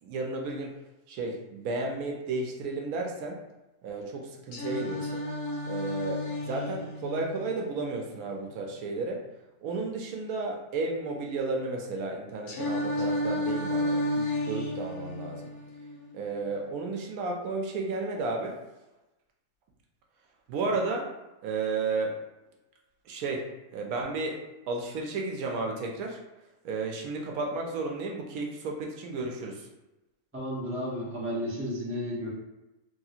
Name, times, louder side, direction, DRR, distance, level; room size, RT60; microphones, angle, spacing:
voice 1, 0.0-0.7 1.1-3.4 3.8-5.2 5.7-9.2 9.6-15.5 16.1-18.6 20.5-21.1 21.4-22.2 23.1-26.2 26.6-29.7, right 3 dB, 80° right, 1 dB, 1.0 m, -33 dB
Singing, 4.5-8.5 12.5-16.5, left 1 dB, 80° left, 1.2 m, -32 dB
voice 2, 30.3-32.3, equal, 15° right, -6 dB, 0.6 m, -33 dB
3.3 x 2.7 x 2.4 m, 1.0 s
omnidirectional pair, 1.5 m